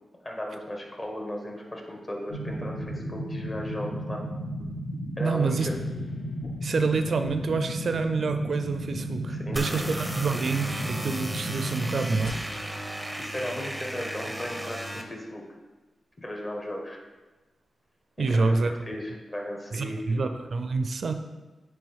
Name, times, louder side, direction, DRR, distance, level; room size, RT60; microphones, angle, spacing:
voice 1, 0.2-4.2 5.2-5.6 9.3-9.9 13.2-15.4 16.2-17.0 18.2-18.6 18.9-20.2, left 1 dB, 30° left, 0 dB, 1.3 m, -36 dB
sound 1, 2.3-12.3, equal, 60° left, 1.5 m, -34 dB
voice 2, 5.2-5.7 6.6-12.5 18.2-18.7 19.7-21.1, right 4 dB, 65° right, 8 dB, 0.4 m, -27 dB
Guitar, 5.6-8.2, left 6 dB, 75° left, 0.3 m, -42 dB
sound 2, 9.6-15.0, right 1 dB, ahead, 0.6 m, -35 dB
8.9 x 3.2 x 3.5 m, 1.2 s
cardioid pair, 75°, 0 cm